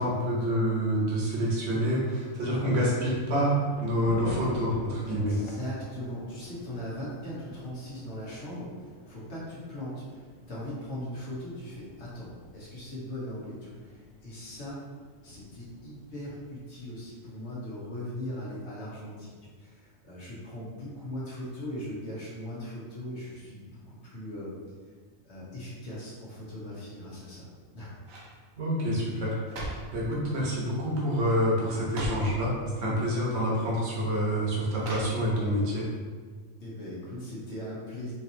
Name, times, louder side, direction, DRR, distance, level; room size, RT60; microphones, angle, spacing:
voice 1, 0.0-5.4 28.6-35.9, equal, 55° right, -5 dB, 1.2 m, -27 dB
Thunder / Rain, 3.2-17.6, left 2 dB, 75° left, 1.0 m, -46 dB
voice 2, 5.0-14.8 15.2-24.5 25.2-27.5 27.7-27.9 36.6-38.1, left 1 dB, 55° left, -7 dB, 1.3 m, -39 dB
sound 1, 27.3-27.6 28.0-28.4 29.2-30.0 30.8-31.0 31.3-31.4 31.8-32.4 33.3-33.4 34.8-35.5 35.9-36.0, right 1 dB, 85° right, 1.2 m, -39 dB
4.5 x 2.9 x 2.7 m, 1.5 s
omnidirectional pair, 1.4 m